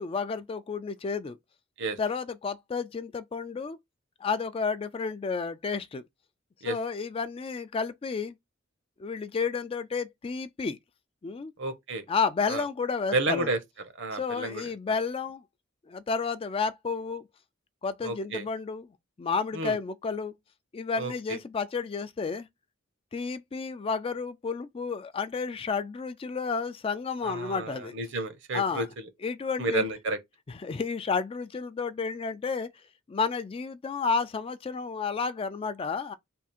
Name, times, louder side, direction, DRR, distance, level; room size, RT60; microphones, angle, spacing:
voice 1, 0.0-1.4 2.0-3.8 4.2-6.0 6.7-8.4 9.0-10.8 11.2-11.5 12.1-13.5 14.1-15.4 15.9-17.3 17.8-18.9 19.2-20.4 20.7-22.5 23.1-27.9 28.5-28.8 29.2-29.8 30.5-32.7 33.1-36.1, left 5 dB, 30° left, 0.3 m, -31 dB
voice 2, 11.6-12.0 12.5-12.6 13.1-13.6 14.0-14.6 18.0-18.5 19.5-19.8 21.0-21.4 27.2-28.8 29.6-30.2, right 2 dB, 65° right, 0.9 m, -31 dB
3.5 x 2.4 x 4.3 m
head